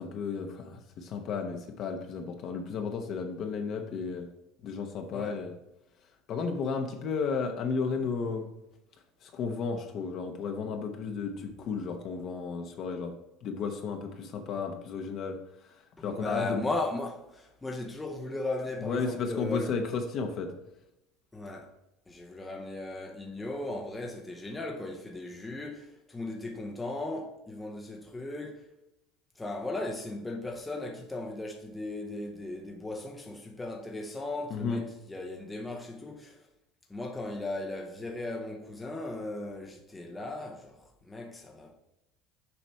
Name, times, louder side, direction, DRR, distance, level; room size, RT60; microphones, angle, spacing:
voice 1, 0.0-4.3 4.6-5.5 6.3-8.5 9.2-15.4 16.0-16.6 18.8-20.5 34.5-34.8, left 5 dB, 40° left, 0.8 m, -33 dB
voice 2, 5.1-5.5 16.0-19.8 21.3-21.7 22.1-28.7 29.4-36.5 36.9-41.8, left 2 dB, 10° left, 0.7 m, -37 dB
7.0 x 5.0 x 4.5 m
cardioid pair, 150°, 0 cm